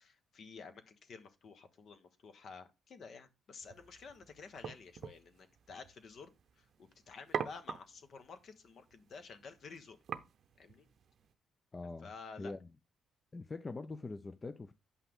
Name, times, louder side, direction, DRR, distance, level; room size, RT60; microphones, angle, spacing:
voice 1, 0.0-6.3 6.6-10.0 10.6-10.8 12.0-12.5, left 5 dB, 55° left, 1.3 m, -52 dB
sound 1, 3.6-11.3, right 7 dB, 60° right, 0.7 m, -46 dB
voice 2, 11.7-12.1 12.4-12.7 13.3-14.7, left 3 dB, 25° left, 0.5 m, -43 dB
8.4 x 5.7 x 3.6 m
cardioid pair, 90°, 0 cm